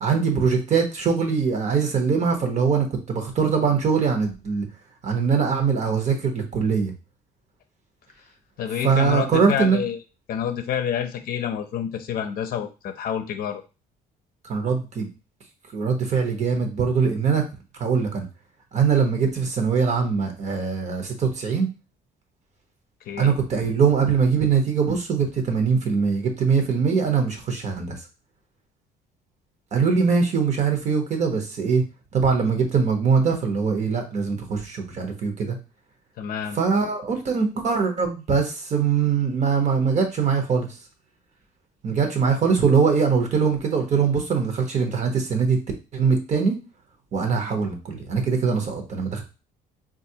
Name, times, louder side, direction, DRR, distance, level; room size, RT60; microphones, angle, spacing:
voice 1, 0.0-4.7 5.0-6.9 8.8-9.8 14.4-15.1 15.7-17.4 17.8-18.3 18.7-21.7 23.2-27.9 29.7-31.8 32.1-35.6 36.6-40.7 41.8-45.6 45.9-46.6 47.1-49.2, right 5 dB, 45° right, 4 dB, 0.9 m, -22 dB
voice 2, 8.6-10.0 10.3-13.6 23.1-23.3 36.2-36.6, left 8 dB, 60° left, 7 dB, 0.6 m, -28 dB
3.9 x 2.5 x 2.8 m, 0.30 s
cardioid pair, 110°, 17 cm